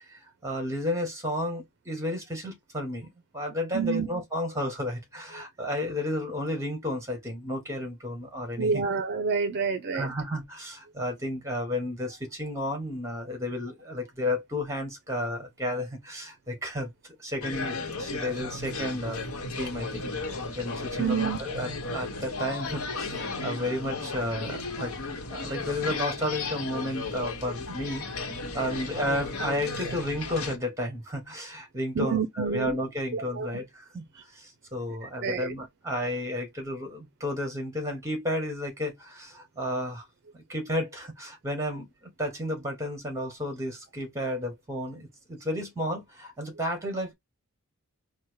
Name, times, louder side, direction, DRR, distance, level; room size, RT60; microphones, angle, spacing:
voice 1, 0.0-8.8 9.9-16.9 17.2-19.3 19.6-34.0 34.4-40.1 40.3-41.9 42.2-47.1, left 1 dB, 15° right, 1.7 m, -32 dB
voice 2, 3.7-4.1 8.6-10.1 21.0-21.4 25.4-25.6 32.0-32.8 33.1-33.5 35.2-35.5, right 5 dB, 50° right, 0.5 m, -28 dB
sound 1, 17.4-30.6, left 3 dB, 75° left, 1.0 m, -35 dB
4.5 x 2.1 x 4.6 m
head